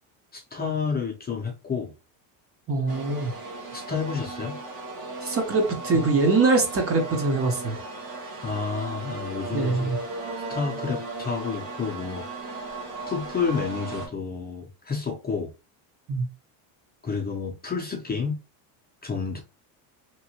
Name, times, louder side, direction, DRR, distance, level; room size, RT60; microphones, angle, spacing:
voice 1, 0.3-1.9 3.7-4.6 8.4-9.9 10.5-12.5 13.1-15.5 17.0-18.4 19.0-19.4, left 5 dB, 20° left, 0.6 m, -30 dB
voice 2, 2.7-3.3 5.2-7.8 9.5-10.0 16.1-16.2, right 3 dB, 30° right, 0.8 m, -23 dB
sound 1, 2.9-14.1, right 3 dB, 85° right, 1.5 m, -36 dB
3.0 x 2.6 x 2.8 m
supercardioid pair, 110°, 49 cm